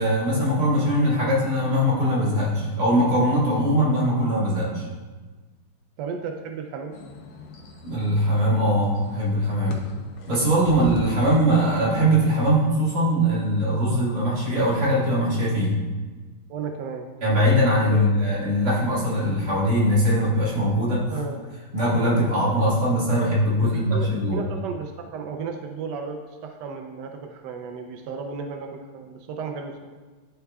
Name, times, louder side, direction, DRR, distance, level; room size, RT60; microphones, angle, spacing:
voice 1, 0.0-4.9 7.8-9.8 10.3-15.8 17.2-21.2 21.7-24.4, equal, 45° right, -9 dB, 2.6 m, -21 dB
voice 2, 6.0-6.9 16.5-17.1 17.9-18.2 21.1-21.4 23.6-29.9, right 5 dB, 85° right, 4 dB, 0.9 m, -34 dB
sound 1, 6.9-12.0, left 2 dB, 65° left, 1.3 m, -39 dB
11.5 x 4.5 x 2.3 m, 1.3 s
omnidirectional pair, 2.4 m